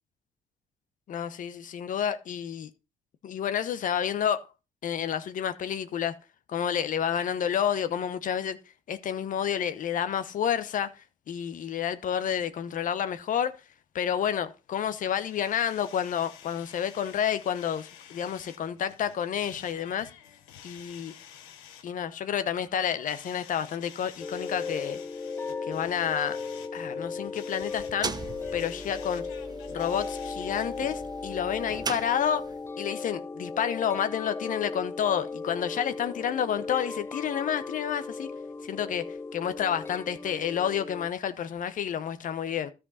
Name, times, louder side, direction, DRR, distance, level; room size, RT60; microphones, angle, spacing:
voice 1, 1.1-2.7 3.2-4.4 4.8-6.1 6.5-8.6 8.9-13.6 13.9-20.1 20.6-21.1 21.8-25.0 25.7-26.4 26.7-28.1 28.5-29.2 29.7-32.4 32.8-38.3 38.6-42.7, left 8 dB, 60° left, 0.9 m, -30 dB
sound 1, 14.8-30.8, left 9 dB, 90° left, 1.0 m, -51 dB
sound 2, 24.2-41.1, left 4 dB, 15° left, 0.4 m, -37 dB
sound 3, 27.6-32.7, right 4 dB, 25° right, 0.7 m, -39 dB
13.0 x 5.2 x 4.1 m
supercardioid pair, 60°, 16 cm